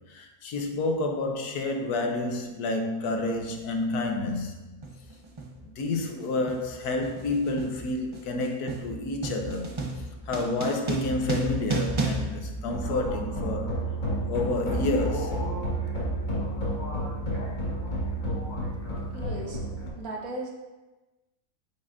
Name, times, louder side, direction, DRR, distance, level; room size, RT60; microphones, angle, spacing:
voice 1, 0.1-4.6 5.6-13.8 14.3-15.4, left 2 dB, 90° left, 1.4 m, -29 dB
sound 1, 3.2-3.4 4.3-4.5 4.8-13.4, right 2 dB, 30° right, 0.6 m, -34 dB
sound 2, 12.7-19.9, right 1 dB, 30° left, 1.9 m, -30 dB
voice 2, 19.1-19.6 20.0-20.5, right 2 dB, 70° right, 1.6 m, -36 dB
8.5 x 6.2 x 2.6 m
omnidirectional pair, 1.6 m